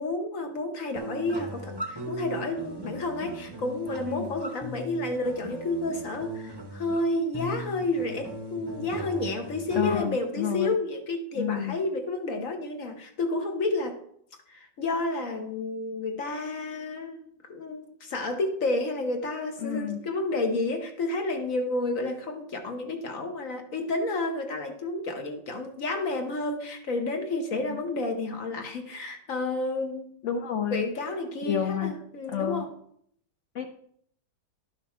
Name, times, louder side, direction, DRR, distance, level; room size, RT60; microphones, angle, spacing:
voice 1, 0.0-14.0 14.5-17.2 17.5-30.1 30.7-32.7, left 2 dB, 50° left, 5 dB, 1.2 m, -30 dB
sound 1, 1.0-10.0, equal, 25° right, 0.5 m, -39 dB
voice 2, 9.8-10.8 11.3-11.8 19.6-20.0 27.5-27.8 30.2-30.8 31.5-32.0 32.3-32.7 33.5-33.7, left 9 dB, 80° left, 6 dB, 0.6 m, -30 dB
11.5 x 5.9 x 4.3 m, 0.67 s
omnidirectional pair, 2.1 m